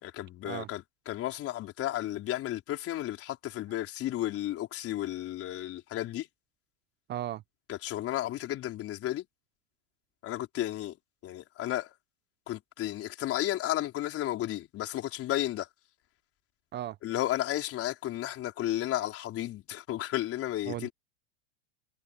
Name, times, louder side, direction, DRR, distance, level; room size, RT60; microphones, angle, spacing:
voice 1, 0.0-6.3 7.7-9.2 10.2-10.9 11.2-11.9 12.5-15.7 17.0-20.9, left 14 dB, 40° left, 4.4 m, -33 dB
voice 2, 7.1-7.4 16.7-17.0 20.7-20.9, right 12 dB, 30° right, 0.7 m, -35 dB
supercardioid pair, 125°, 36 cm